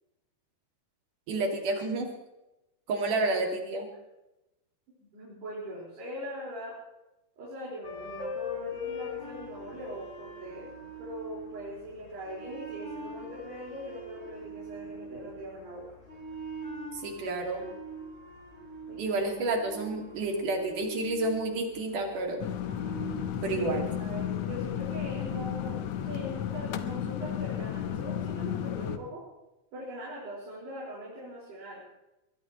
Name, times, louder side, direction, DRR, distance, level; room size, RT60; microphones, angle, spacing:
voice 1, 1.3-2.1 2.9-3.9 16.9-17.7 19.0-22.4 23.4-23.8, right 2 dB, 55° right, 2 dB, 3.8 m, -30 dB
voice 2, 5.0-6.8 7.4-15.8 18.9-19.2 23.5-29.3 29.7-31.9, equal, 80° right, -7 dB, 7.0 m, -41 dB
sound 1, 7.8-26.0, equal, 20° left, 2.7 m, -43 dB
sound 2, 22.4-29.0, left 10 dB, 85° left, 1.6 m, -33 dB
22.5 x 20.0 x 3.2 m, 0.96 s
omnidirectional pair, 4.6 m